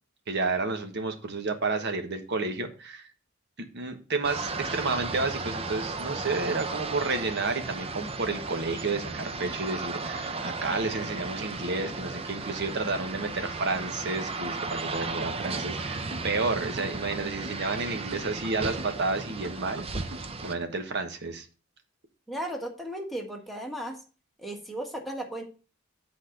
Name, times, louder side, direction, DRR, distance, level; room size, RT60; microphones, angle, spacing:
voice 1, 0.3-3.1 3.7-19.8 20.4-21.4, right 3 dB, 55° right, 7 dB, 1.2 m, -31 dB
sound 1, 4.2-20.5, right 3 dB, 30° right, 0.7 m, -35 dB
sound 2, 15.4-20.8, right 1 dB, 80° right, 1.5 m, -44 dB
voice 2, 22.3-24.0 24.4-25.4, right 1 dB, ahead, 1 dB, 1.4 m, -35 dB
8.2 x 4.3 x 6.4 m, 0.37 s
head